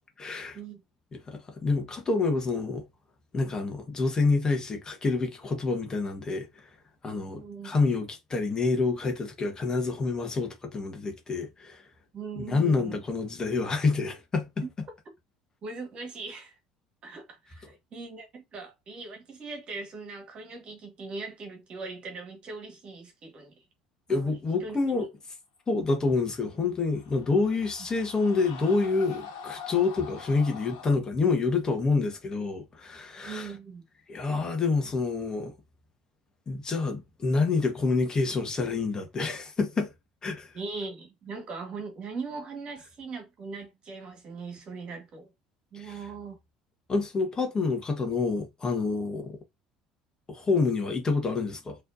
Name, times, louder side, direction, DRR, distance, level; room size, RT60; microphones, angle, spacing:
voice 1, 0.2-0.6 1.3-2.8 3.3-6.7 7.0-11.8 12.4-14.5 24.1-25.1 25.7-33.5 34.1-35.5 36.5-39.9 40.2-40.5 45.7-45.9 46.9-49.4 50.3-51.8, left 4 dB, 30° left, 1.5 m, -27 dB
voice 2, 7.3-7.7 12.1-13.0 14.6-14.7 15.6-16.6 17.0-23.6 24.1-24.3 24.6-25.1 33.2-33.8 40.5-45.3 45.7-46.4, right 4 dB, 45° right, 1.7 m, -40 dB
sound 1, 26.5-31.0, left 6 dB, 65° left, 1.6 m, -44 dB
4.2 x 3.4 x 2.7 m
figure-of-eight pair, 60°, 3 cm